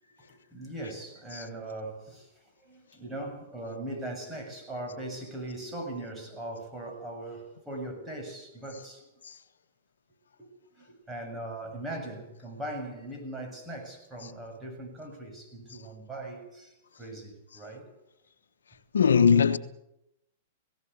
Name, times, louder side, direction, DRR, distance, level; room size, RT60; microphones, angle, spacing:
voice 1, 0.0-2.3 2.6-9.1 10.4-10.5 10.8-17.9, right 1 dB, 10° right, 7.4 m, -40 dB
voice 2, 18.9-19.6, left 6 dB, 85° left, 1.1 m, -21 dB
19.0 x 17.5 x 8.2 m
hypercardioid pair, 120°, 0 cm